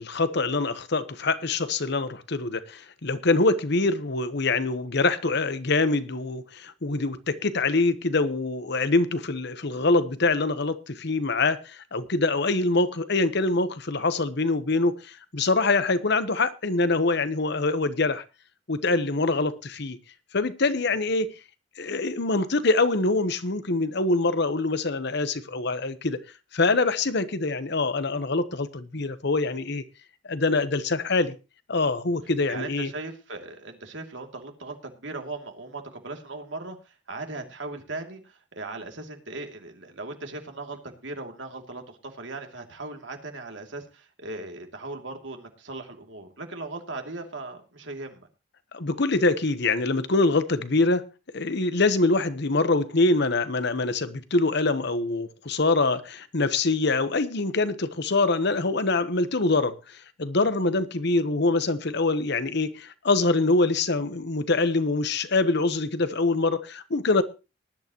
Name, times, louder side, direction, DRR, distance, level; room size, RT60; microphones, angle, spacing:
voice 1, 0.0-18.2 18.7-20.0 20.3-21.3 21.8-26.2 26.5-29.8 30.2-31.4 31.7-32.9 48.7-51.1 51.3-67.2, left 3 dB, 60° left, 1.1 m, -24 dB
voice 2, 32.5-48.3, right 2 dB, 70° right, 2.8 m, -38 dB
19.0 x 11.0 x 3.0 m
head